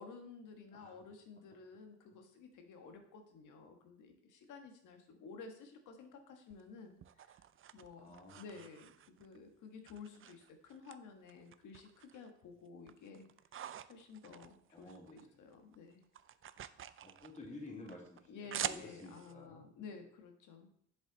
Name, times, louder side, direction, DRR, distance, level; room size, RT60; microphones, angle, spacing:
voice 1, 0.0-7.4 7.7-13.3 13.9-16.0 18.3-20.7, left 4 dB, 80° left, 5 dB, 1.6 m, -53 dB
sound 1, 6.5-9.4 9.8-11.0 11.3-12.3 12.7-15.3 15.5-19.3, right 10 dB, 45° right, 0.5 m, -47 dB
voice 2, 7.9-8.5 14.7-15.3 17.0-20.0, left 2 dB, 25° left, -2 dB, 2.9 m, -52 dB
7.5 x 7.3 x 4.0 m, 0.65 s
cardioid pair, 90°, 30 cm